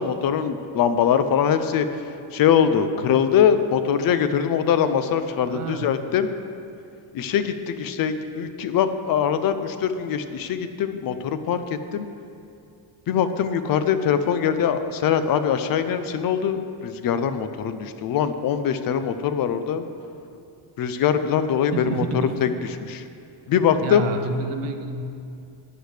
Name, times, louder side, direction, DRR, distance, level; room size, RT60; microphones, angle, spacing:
voice 1, 0.0-2.0 2.3-6.3 7.1-12.1 13.1-19.9 20.8-22.0 22.4-22.5 22.8-23.0 23.5-24.1, left 8 dB, 45° left, 10 dB, 0.5 m, -22 dB
voice 2, 5.4-6.0 21.7-22.4 23.8-25.0, right 3 dB, 85° right, 6 dB, 1.0 m, -29 dB
14.5 x 9.9 x 3.3 m, 2.5 s
cardioid pair, 170°, 49 cm